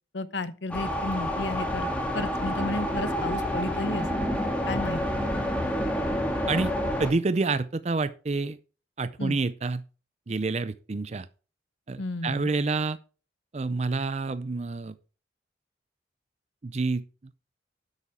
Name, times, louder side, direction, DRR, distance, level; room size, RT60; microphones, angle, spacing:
voice 1, 0.1-4.1 4.7-5.0 9.2-9.4 12.0-12.5, left 2 dB, 75° left, 0.9 m, -32 dB
sound 1, 0.7-7.1, equal, 5° left, 2.0 m, -28 dB
voice 2, 7.0-8.6 9.0-9.8 10.3-11.3 11.9-13.0 13.5-15.0 16.6-17.0, right 3 dB, 35° right, 0.5 m, -28 dB
10.5 x 8.2 x 3.6 m
head